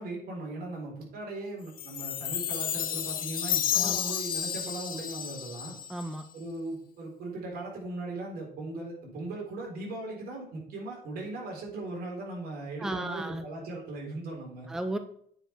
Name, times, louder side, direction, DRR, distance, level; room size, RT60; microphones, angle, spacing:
voice 1, 0.0-5.7 6.3-14.7, right 2 dB, 65° right, -1 dB, 3.7 m, -38 dB
Chime, 1.8-6.2, left 10 dB, 55° left, 1.0 m, -31 dB
voice 2, 3.7-4.2 5.9-6.2 12.8-13.4 14.7-15.0, right 1 dB, 5° right, 9 dB, 0.5 m, -34 dB
8.9 x 5.2 x 4.5 m, 0.65 s
cardioid pair, 110°, 17 cm